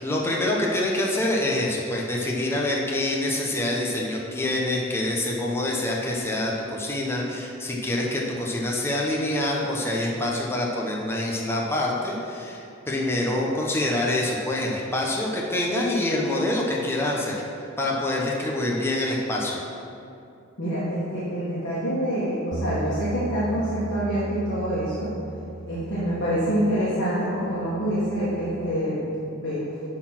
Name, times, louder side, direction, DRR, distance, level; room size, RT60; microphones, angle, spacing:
voice 1, 0.0-17.4 17.8-19.6, left 1 dB, 10° left, -3 dB, 0.9 m, -26 dB
voice 2, 20.6-25.1 25.7-29.0 29.4-29.6, equal, 60° left, -10 dB, 1.9 m, -26 dB
Bass guitar, 22.5-28.8, right 2 dB, 45° right, 0.5 m, -37 dB
11.0 x 4.1 x 6.0 m, 2.6 s
head